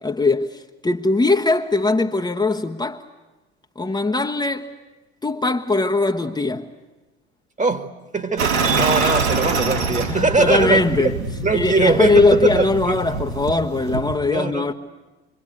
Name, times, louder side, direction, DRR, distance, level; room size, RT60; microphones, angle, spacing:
voice 1, 0.0-3.0 3.8-4.7 5.2-6.7 10.1-11.2 11.5-14.7, left 3 dB, 15° left, 1.2 m, -20 dB
voice 2, 7.6-11.2 11.4-13.0 14.3-14.7, right 3 dB, 20° right, 1.8 m, -21 dB
sound 1, 8.4-14.2, right 4 dB, 80° right, 4.6 m, -25 dB
26.0 x 24.0 x 9.5 m
hypercardioid pair, 65°, 34 cm